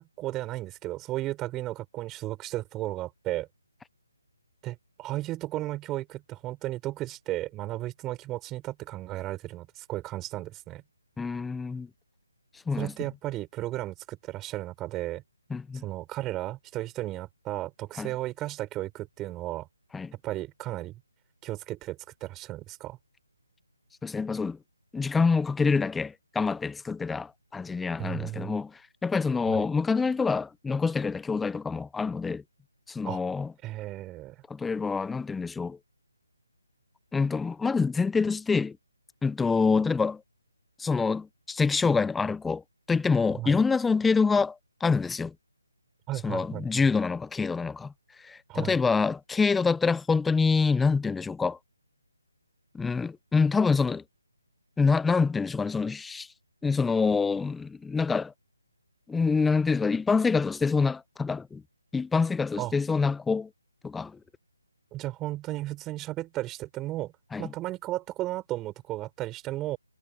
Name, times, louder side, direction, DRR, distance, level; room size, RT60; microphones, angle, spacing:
voice 1, 0.0-3.5 4.6-10.8 12.8-15.2 15.8-19.7 20.2-21.0 21.4-23.0 28.0-28.6 29.5-29.6 33.1-33.2 33.6-34.4 43.4-43.6 46.1-46.6 48.5-48.8 62.6-62.7 64.9-67.1 67.4-69.8, right 16 dB, 15° right, 5.4 m, -34 dB
voice 2, 11.2-11.9 12.7-12.9 15.5-15.8 18.0-18.1 19.9-20.1 24.0-24.6 24.9-32.4 32.9-33.5 34.5-35.8 37.1-38.8 39.2-40.2 40.8-42.6 42.9-45.3 46.2-47.9 48.2-51.6 52.7-54.0 54.8-56.3 56.6-58.3 59.1-61.6 61.9-63.5 63.8-64.2 67.3-67.5, left 4 dB, 5° left, 1.2 m, -26 dB
figure-of-eight pair, 150°, 0 cm